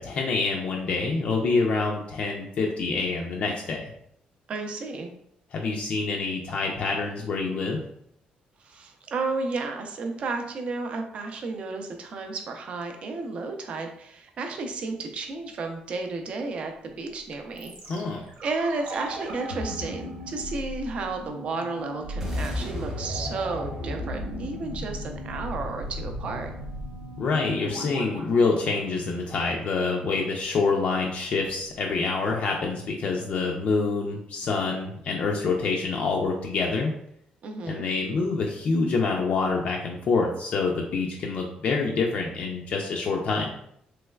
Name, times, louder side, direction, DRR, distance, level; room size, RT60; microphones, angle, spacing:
voice 1, 0.0-3.9 5.5-7.8 17.9-18.2 27.2-36.9 37.7-43.5, left 4 dB, 50° left, 0 dB, 0.4 m, -26 dB
voice 2, 4.5-5.1 8.6-17.7 18.4-26.5 37.4-37.9, right 3 dB, 45° right, 4 dB, 0.5 m, -32 dB
sound 1, 17.6-29.6 29.8-29.9, equal, 85° right, 1.0 m, -36 dB
sound 2, 22.2-26.6, left 1 dB, 15° right, 0.9 m, -38 dB
3.2 x 3.0 x 2.2 m, 0.72 s
cardioid pair, 165°, 3 cm